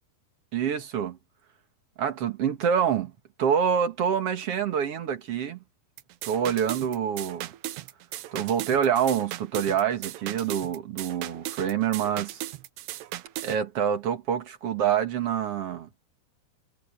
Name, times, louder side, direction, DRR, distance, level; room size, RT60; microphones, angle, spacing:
voice 1, 0.5-1.2 2.0-3.1 3.4-5.6 6.2-7.5 8.3-12.4 13.4-15.9, right 8 dB, 50° right, 2.0 m, -26 dB
sound 1, 6.0-13.6, right 14 dB, 85° right, 3.1 m, -37 dB
omnidirectional pair, 4.7 m